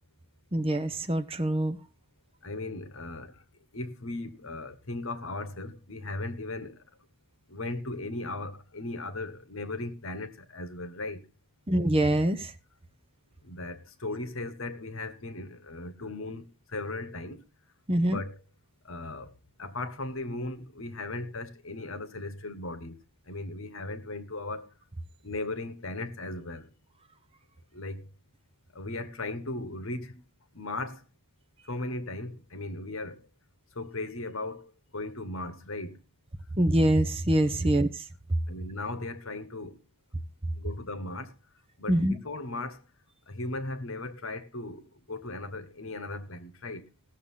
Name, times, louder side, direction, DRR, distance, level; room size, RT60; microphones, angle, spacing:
voice 1, 0.5-1.8 11.7-12.5 17.9-18.2 36.5-37.9 41.9-42.1, right 1 dB, 25° right, 0.9 m, -24 dB
voice 2, 2.4-3.4 3.7-6.8 7.5-11.2 13.4-17.4 18.0-18.4 18.8-23.0 23.3-24.7 25.2-26.7 27.7-28.1 28.7-30.2 30.5-31.1 31.7-33.2 33.7-36.0 37.6-37.7 38.5-39.9 40.5-41.3 41.8-42.9 43.3-46.8, left 2 dB, 65° left, 1.5 m, -37 dB
16.5 x 6.9 x 5.6 m
head